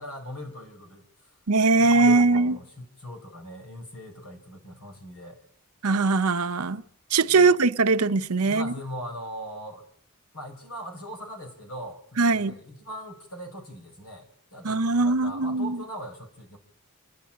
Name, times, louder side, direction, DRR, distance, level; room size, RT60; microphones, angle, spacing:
voice 1, 0.0-1.4 1.7-5.4 7.3-7.5 8.4-9.9 10.3-16.6, equal, 80° left, 5.3 m, -40 dB
voice 2, 1.5-2.6 5.8-6.8 7.1-8.7 12.2-12.5 14.6-15.8, right 3 dB, 90° right, 0.9 m, -21 dB
29.0 x 10.5 x 8.6 m
head